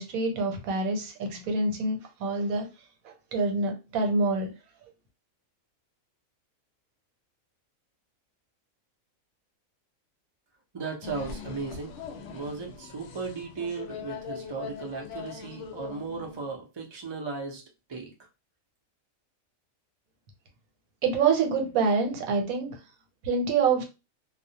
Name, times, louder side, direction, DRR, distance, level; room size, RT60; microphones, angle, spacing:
voice 1, 0.0-2.7 3.3-4.5 21.0-22.7 23.3-23.8, right 4 dB, 85° right, 3 dB, 1.1 m, -26 dB
voice 2, 10.7-12.0 12.3-17.6 17.9-18.1, right 4 dB, 45° right, 1 dB, 0.3 m, -36 dB
sound 1, 11.0-16.5, left 6 dB, 70° left, 0.8 m, -41 dB
2.3 x 2.1 x 2.7 m, 0.29 s
omnidirectional pair, 1.5 m